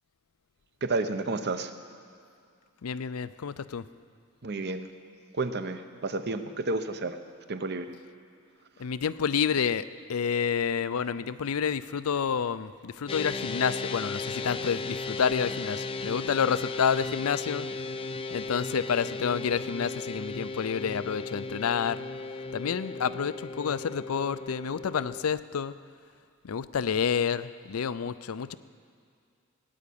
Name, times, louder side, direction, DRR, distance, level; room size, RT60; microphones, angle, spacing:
voice 1, 0.8-1.7 4.4-4.9 5.4-7.2 7.5-7.9, right 3 dB, 50° right, 9 dB, 0.8 m, -31 dB
voice 2, 2.8-3.8 8.8-17.7 18.3-22.1 22.5-25.7 26.4-28.6, left 7 dB, 90° left, 15 dB, 0.5 m, -29 dB
sound 1, 13.1-25.2, left 3 dB, 25° left, 0.5 m, -36 dB
18.0 x 9.3 x 8.6 m, 2.3 s
head